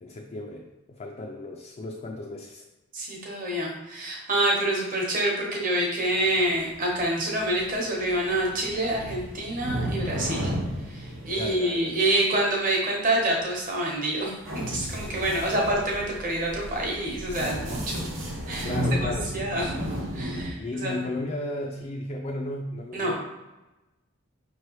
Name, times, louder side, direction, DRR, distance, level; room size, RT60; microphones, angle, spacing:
voice 1, 0.0-2.6 11.4-12.0 18.6-19.3 20.6-23.2, left 2 dB, 30° left, 1 dB, 0.3 m, -34 dB
voice 2, 2.9-10.4 10.9-18.1 18.5-19.8 20.1-21.0 22.9-23.1, right 1 dB, 40° right, -2 dB, 1.0 m, -27 dB
sound 1, 6.0-12.0 14.4-20.5, equal, 70° right, 1.0 m, -33 dB
5.2 x 3.1 x 3.0 m, 1.0 s
head